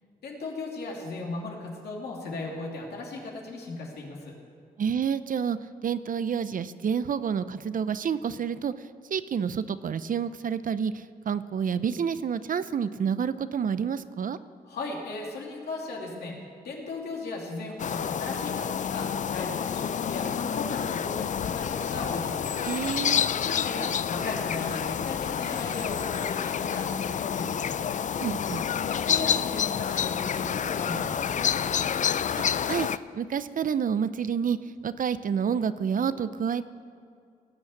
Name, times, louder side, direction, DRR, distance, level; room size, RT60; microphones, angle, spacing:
voice 1, 0.2-4.3 14.7-16.4 16.6-22.5 23.3-27.9 28.9-31.7, left 3 dB, 85° left, -1 dB, 2.8 m, -37 dB
voice 2, 4.8-8.7 9.1-14.4 22.6-23.3 28.2-28.7 32.6-34.6 34.8-36.6, right 7 dB, 55° right, 14 dB, 0.6 m, -29 dB
sound 1, 17.8-33.0, left 8 dB, 50° left, 0.4 m, -29 dB
18.0 x 6.4 x 8.6 m, 2.4 s
cardioid pair, 70°, 16 cm